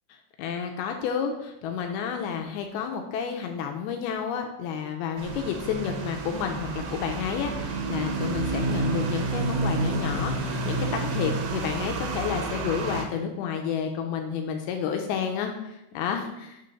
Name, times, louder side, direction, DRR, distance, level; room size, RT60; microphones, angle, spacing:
voice 1, 0.4-16.6, left 7 dB, 80° left, 4 dB, 2.3 m, -30 dB
sound 1, 5.2-13.0, right 3 dB, 85° right, 3.2 m, -29 dB
6.8 x 3.7 x 5.2 m, 0.87 s
omnidirectional pair, 4.9 m